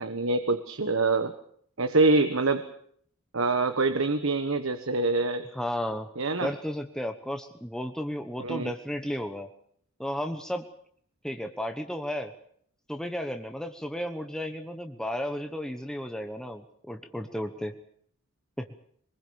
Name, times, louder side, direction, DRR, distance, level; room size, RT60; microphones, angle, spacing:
voice 1, 0.0-1.3 1.8-2.7 3.3-5.4 6.2-6.5 8.4-8.7, right 3 dB, 70° right, 8 dB, 1.3 m, -25 dB
voice 2, 5.5-6.1 6.4-9.5 10.0-10.7 11.2-12.3 12.9-17.7 18.6-18.7, equal, 5° left, 6 dB, 1.1 m, -33 dB
23.5 x 21.0 x 7.0 m, 0.63 s
head